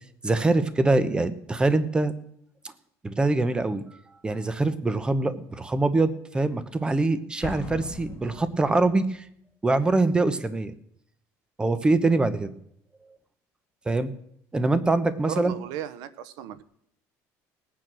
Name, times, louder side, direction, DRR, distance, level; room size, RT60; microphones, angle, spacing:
voice 1, 0.2-2.1 3.0-3.8 4.2-9.3 9.6-10.7 11.6-12.5 13.9-14.1 14.5-15.5, right 2 dB, 15° right, 14 dB, 1.0 m, -24 dB
Explosion, 7.4-9.0, left 6 dB, 35° left, 2.5 m, -39 dB
voice 2, 15.3-16.6, right 10 dB, 80° right, 16 dB, 1.0 m, -35 dB
18.5 x 9.0 x 6.2 m, 0.72 s
cardioid pair, 130°, 7 cm